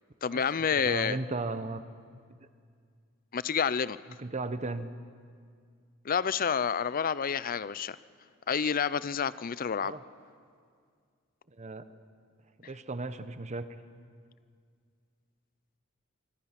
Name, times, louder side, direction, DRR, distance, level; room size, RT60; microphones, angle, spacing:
voice 1, 0.2-1.2 3.3-4.0 6.0-8.0 8.5-9.9, left 7 dB, 45° left, 17 dB, 0.5 m, -29 dB
voice 2, 0.7-1.8 4.2-4.9 9.8-10.0 11.5-11.8 12.6-13.7, right 3 dB, 35° right, 11 dB, 1.0 m, -35 dB
25.0 x 24.0 x 5.9 m, 2.1 s
head